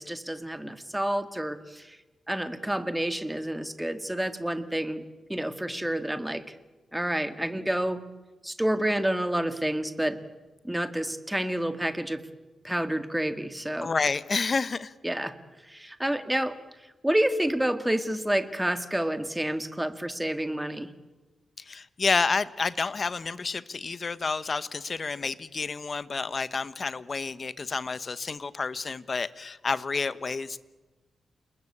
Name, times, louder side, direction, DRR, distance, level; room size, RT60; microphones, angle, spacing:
voice 1, 0.0-2.0 2.3-5.0 5.3-6.4 6.9-8.0 8.4-10.2 10.6-12.2 12.6-13.9 15.0-15.3 15.7-16.5 17.0-20.9, right 1 dB, 5° right, 9 dB, 1.9 m, -29 dB
voice 2, 13.8-14.9 21.6-30.6, left 4 dB, 45° left, 15 dB, 1.1 m, -29 dB
28.5 x 20.5 x 8.7 m, 1.2 s
cardioid pair, 95°, 0 cm